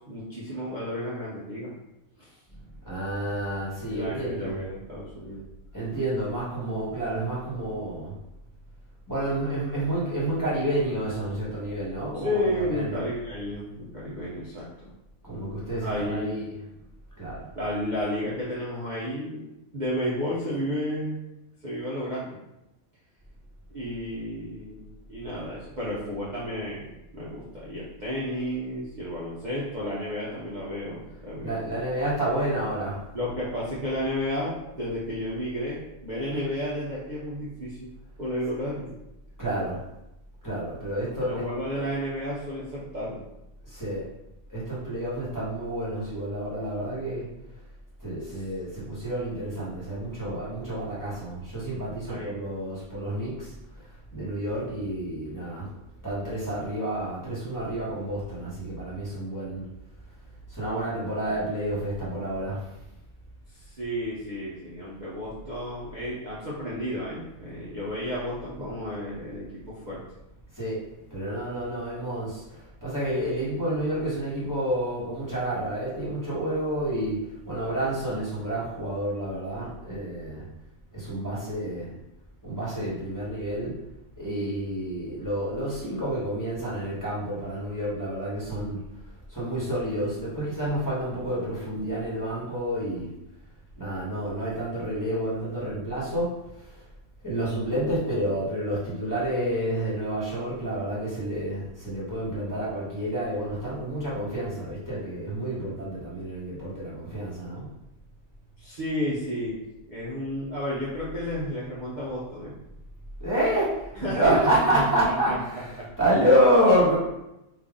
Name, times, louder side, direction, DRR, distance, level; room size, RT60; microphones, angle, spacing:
voice 1, 0.0-1.7 2.2-2.3 3.9-5.4 12.1-14.9 15.8-16.4 17.5-19.4 19.7-21.2 21.6-22.4 23.7-31.7 33.1-37.9 38.2-38.9 41.2-43.3 48.2-48.4 52.1-52.5 63.5-70.0 108.6-109.6 109.9-112.5 114.0-114.3 114.7-114.8 115.3-115.4 115.8-115.9, equal, 45° right, -8 dB, 0.7 m, -32 dB
voice 2, 2.6-4.5 5.7-8.1 9.1-13.0 15.2-16.3 17.2-17.5 31.4-33.0 39.4-39.8 40.4-41.4 41.7-41.8 43.7-44.0 44.5-47.3 48.0-55.7 56.0-59.6 60.5-62.6 70.5-70.8 71.1-77.2 77.4-80.4 80.9-81.9 82.4-83.7 84.2-88.8 89.3-93.1 93.8-96.8 97.2-107.7 113.2-117.0, right 1 dB, 15° left, -9 dB, 1.2 m, -29 dB
3.4 x 2.5 x 3.6 m, 0.90 s
omnidirectional pair, 1.3 m